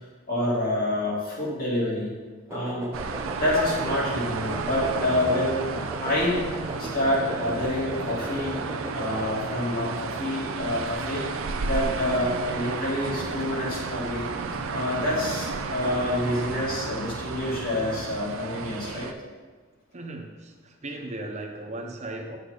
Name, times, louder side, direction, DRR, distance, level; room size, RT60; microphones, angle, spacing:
voice 1, 0.3-2.1 2.5-2.9 3.3-5.6 6.0-6.4 6.8-8.6 8.9-11.2 11.6-14.3 14.7-19.1, left 1 dB, 45° left, -5 dB, 2.6 m, -27 dB
sound 1, 2.5-9.4, right 1 dB, 15° right, 0.4 m, -38 dB
sound 2, 2.9-19.1, right 4 dB, 80° right, 0.6 m, -32 dB
voice 2, 19.9-22.4, right 2 dB, 35° right, 1 dB, 1.1 m, -37 dB
9.6 x 6.8 x 4.1 m, 1.3 s
head